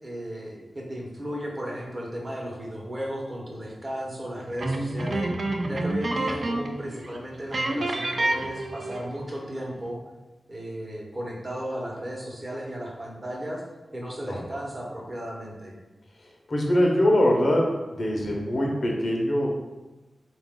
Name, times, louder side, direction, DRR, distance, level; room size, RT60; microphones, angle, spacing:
voice 1, 0.0-5.3 5.7-10.0 10.5-13.6 13.9-15.7, equal, 35° right, -2 dB, 1.0 m, -35 dB
sound 1, 4.6-6.8 7.0-7.2 7.5-9.2, right 2 dB, 55° right, 0.5 m, -28 dB
voice 2, 16.5-17.7 18.0-19.5, left 1 dB, 55° left, -1 dB, 0.8 m, -22 dB
3.9 x 2.5 x 3.7 m, 1.1 s
wide cardioid pair, 70°, 0 cm